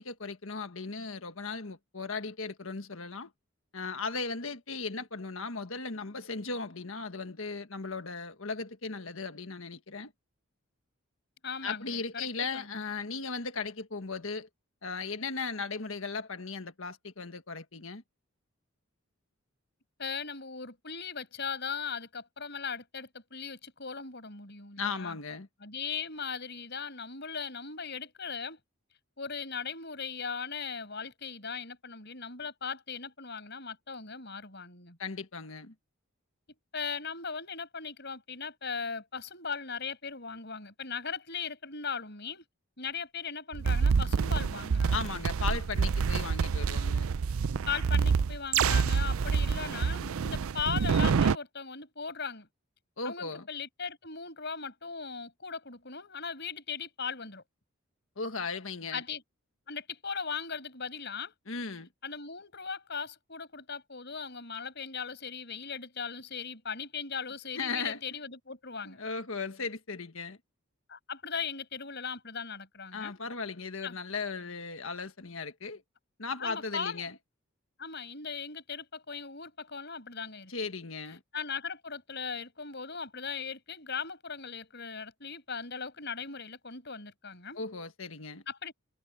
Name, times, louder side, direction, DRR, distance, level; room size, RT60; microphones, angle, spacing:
voice 1, 0.0-3.3 3.7-10.1 11.6-14.5 14.8-18.0 24.8-25.5 35.0-35.7 44.9-47.0 53.0-53.5 58.2-59.0 61.5-61.9 67.5-68.0 68.8-70.4 72.9-75.8 76.2-77.1 80.5-81.2 87.5-88.4, left 4 dB, 70° left, 1.6 m, -37 dB
voice 2, 11.4-12.8 20.0-25.2 25.6-28.6 29.2-35.0 36.7-42.4 42.8-45.0 47.7-52.5 53.0-57.4 58.9-59.2 59.7-61.3 62.0-69.0 70.9-73.2 73.8-74.0 76.4-77.1 77.8-80.5 81.3-87.6 88.5-88.7, left 5 dB, 50° left, 6.1 m, -38 dB
sound 1, 43.5-51.4, right 5 dB, 75° right, 0.5 m, -27 dB
head